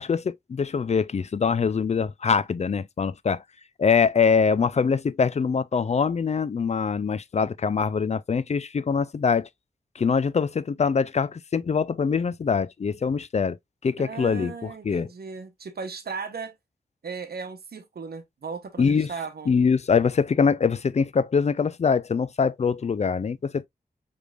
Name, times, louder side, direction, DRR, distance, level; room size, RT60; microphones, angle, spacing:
voice 1, 0.0-3.4 3.8-9.5 10.0-13.6 13.8-15.1 18.8-19.1 19.5-23.7, left 5 dB, 45° left, 0.4 m, -23 dB
voice 2, 14.0-16.5 17.0-19.5, right 5 dB, 75° right, 0.9 m, -36 dB
4.9 x 3.3 x 2.4 m
cardioid pair, 60°, 16 cm